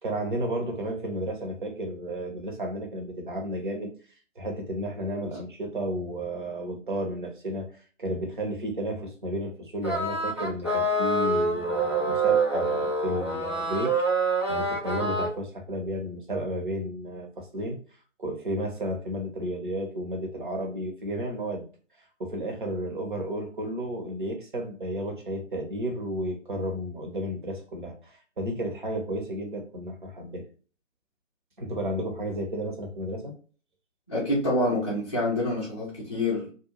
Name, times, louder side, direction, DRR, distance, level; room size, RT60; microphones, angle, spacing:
voice 1, 0.0-3.9 4.3-13.9 14.5-17.8 18.2-21.7 22.0-30.5 31.6-33.3, right 1 dB, 40° right, 0.9 m, -32 dB
sound 1, 9.8-15.3, right 2 dB, 25° right, 0.5 m, -26 dB
voice 2, 34.1-36.5, left 1 dB, 25° left, 0.5 m, -27 dB
2.5 x 2.3 x 3.0 m
figure-of-eight pair, 145°, 39 cm